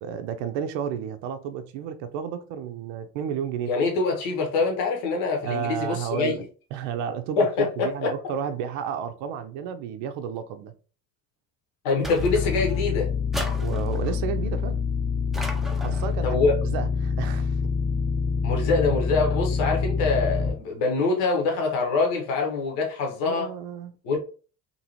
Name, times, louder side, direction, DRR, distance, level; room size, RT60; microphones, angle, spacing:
voice 1, 0.0-3.7 5.4-6.5 6.7-10.7 13.4-14.8 15.8-16.4 16.7-17.6 23.2-23.9, right 8 dB, 60° right, 0.5 m, -32 dB
voice 2, 3.7-6.3 7.4-8.1 11.8-13.1 16.2-16.6 18.4-23.5 24.0-24.2, left 4 dB, 70° left, 1.0 m, -24 dB
sound 1, 12.0-12.8 13.3-14.2 15.3-16.1, equal, ahead, 0.4 m, -36 dB
sound 2, 12.2-20.5, left 5 dB, 35° left, 0.8 m, -26 dB
2.6 x 2.6 x 2.8 m
hypercardioid pair, 60°, 50 cm